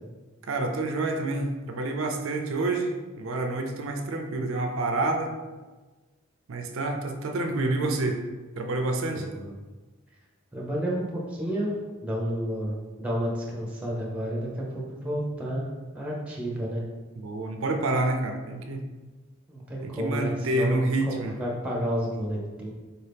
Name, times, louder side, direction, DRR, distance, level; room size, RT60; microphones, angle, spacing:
voice 1, 0.4-5.3 6.5-8.2 8.6-9.3 17.2-18.8 19.8-21.3, right 2 dB, 65° right, 4 dB, 0.4 m, -28 dB
voice 2, 9.2-9.5 10.5-11.7 12.0-15.7 15.9-16.8 19.5-20.8 21.1-22.7, equal, 5° right, -4 dB, 0.7 m, -31 dB
4.1 x 2.7 x 3.4 m, 1.3 s
head